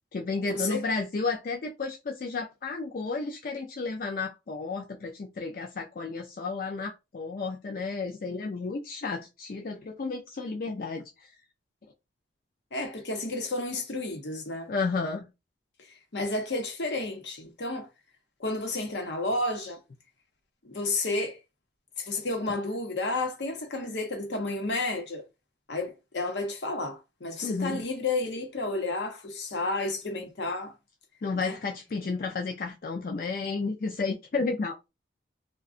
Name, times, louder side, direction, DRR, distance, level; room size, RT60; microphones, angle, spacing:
voice 1, 0.1-11.3 14.7-15.3 27.4-27.8 31.2-34.8, left 4 dB, 50° left, 0.4 m, -32 dB
voice 2, 12.7-14.7 16.1-17.9 18.4-19.8 20.6-21.4 22.0-25.2 25.7-30.7 31.3-31.6, left 2 dB, 75° left, 0.8 m, -31 dB
2.4 x 2.2 x 3.6 m
head